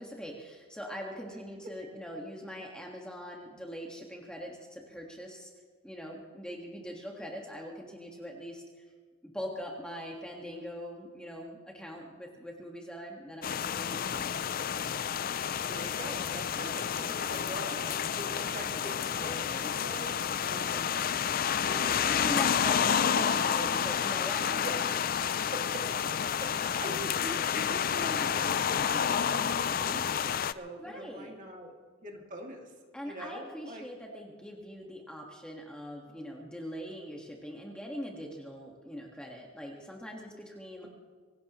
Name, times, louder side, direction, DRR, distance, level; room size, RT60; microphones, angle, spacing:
voice 1, 0.0-5.5 5.8-8.6 9.2-14.3 21.6-21.8 22.2-24.6 24.9-25.0 30.5-31.3 32.9-40.9, equal, 5° left, -1 dB, 1.7 m, -42 dB
sound 1, 13.4-30.5, left 8 dB, 40° left, 0.4 m, -30 dB
voice 2, 15.7-21.3 23.0-23.3 23.5-23.7 24.6-24.7 25.4-25.8 26.2-31.7 32.0-32.7 33.0-33.8, right 1 dB, 35° right, 1 dB, 2.4 m, -43 dB
24.0 x 17.5 x 3.1 m, 1.5 s
head